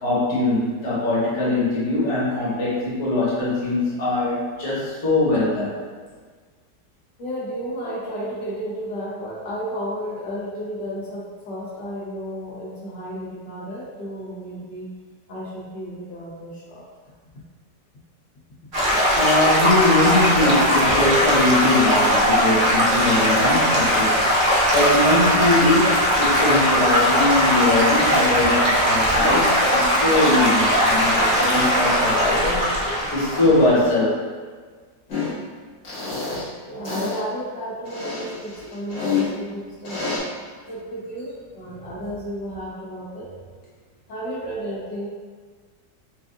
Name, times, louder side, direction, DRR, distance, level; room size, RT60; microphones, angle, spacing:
voice 1, 0.0-5.7 19.1-24.2 24.7-32.6 33.1-34.2 36.3-36.4, left 2 dB, 45° left, -9 dB, 1.5 m, -21 dB
voice 2, 7.2-14.9 15.3-16.8 36.6-40.0 40.7-43.3 44.1-45.1, equal, 80° left, -8 dB, 1.7 m, -32 dB
Stream / Gurgling / Trickle dribble, 18.7-33.8, equal, 45° right, 0.7 m, -19 dB
sound 1, 35.1-35.3 35.8-36.4 36.8-37.2 37.9-39.2 39.8-40.2, left 5 dB, 60° left, 2.0 m, -27 dB
6.4 x 2.5 x 2.5 m, 1.5 s
omnidirectional pair, 1.9 m